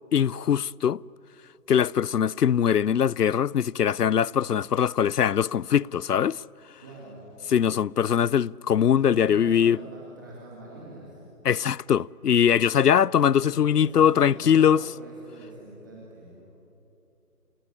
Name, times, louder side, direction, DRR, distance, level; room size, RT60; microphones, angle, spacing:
voice 1, 0.1-1.0 1.7-6.4 7.5-9.8 11.4-14.8, left 8 dB, 75° left, 0.5 m, -21 dB
voice 2, 6.8-7.3 9.0-11.6 13.4-16.4, right 1 dB, 15° right, 2.2 m, -44 dB
29.0 x 20.0 x 9.9 m
figure-of-eight pair, 165°, 48 cm